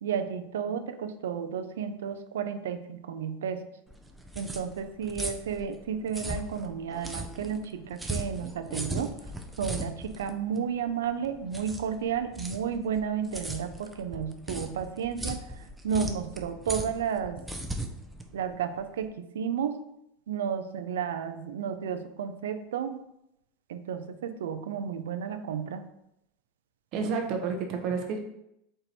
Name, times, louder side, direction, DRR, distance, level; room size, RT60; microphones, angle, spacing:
voice 1, 0.0-3.6 4.4-9.2 9.6-17.4 18.3-19.8 20.3-23.0 23.7-25.9, right 7 dB, 85° right, 9 dB, 0.4 m, -32 dB
sound 1, 3.9-19.1, right 1 dB, 10° right, 0.5 m, -38 dB
voice 2, 26.9-28.2, right 5 dB, 55° right, 4 dB, 0.7 m, -30 dB
4.5 x 2.6 x 4.1 m, 0.81 s
hypercardioid pair, 100°, 0 cm